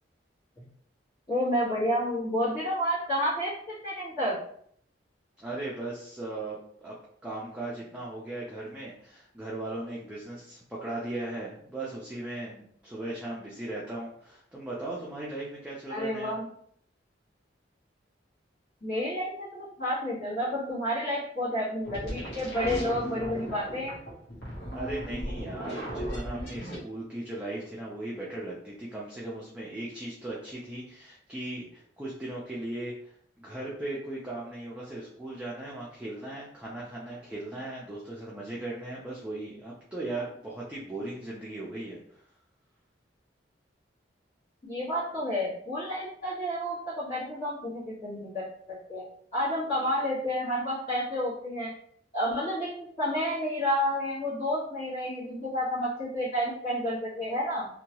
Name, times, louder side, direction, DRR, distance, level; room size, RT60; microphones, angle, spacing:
voice 1, 1.3-4.4 15.9-16.5 18.8-24.0 44.6-48.4 48.9-49.0 49.3-51.7 52.1-57.7, equal, 35° left, -14 dB, 1.3 m, -30 dB
voice 2, 5.4-7.0 7.2-16.3 24.7-33.1 33.4-42.0, right 2 dB, 5° right, -6 dB, 0.4 m, -38 dB
sound 1, 21.8-26.8, equal, 60° left, 1.0 m, -36 dB
2.8 x 2.2 x 2.9 m, 0.65 s
head